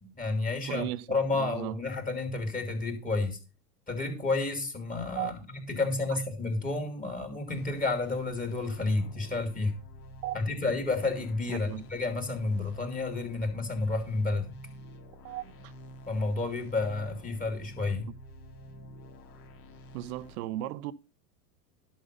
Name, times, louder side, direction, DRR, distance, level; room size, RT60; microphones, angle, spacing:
voice 1, 0.0-3.4 3.9-9.7 10.3-14.6 16.1-18.1, left 3 dB, 15° left, 3.4 m, -31 dB
voice 2, 0.6-1.1 1.3-1.8 5.2-5.3 10.2-10.4 11.5-11.8 15.2-15.7 19.9-20.9, right 15 dB, 60° right, 0.9 m, -36 dB
sound 1, 7.5-20.4, equal, 60° left, 2.6 m, -49 dB
11.5 x 6.5 x 5.3 m
hypercardioid pair, 105°, 48 cm